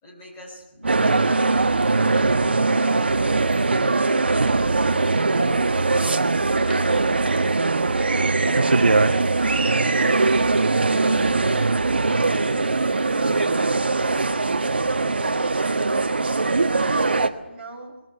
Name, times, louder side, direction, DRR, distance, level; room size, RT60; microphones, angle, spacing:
voice 1, 0.0-2.5 3.1-6.6 9.8-10.5 10.8-12.6, left 1 dB, 10° left, -3 dB, 3.8 m, -46 dB
sound 1, 0.8-12.4, right 3 dB, 70° right, 0.8 m, -26 dB
sound 2, 0.9-17.3, right 3 dB, 55° right, 1.5 m, -22 dB
sound 3, 1.1-14.4, left 1 dB, 50° left, 3.4 m, -42 dB
voice 2, 15.3-16.7 17.5-17.9, right 2 dB, 5° right, -6 dB, 2.5 m, -43 dB
20.0 x 16.0 x 8.9 m, 0.99 s
figure-of-eight pair, 175°, 7 cm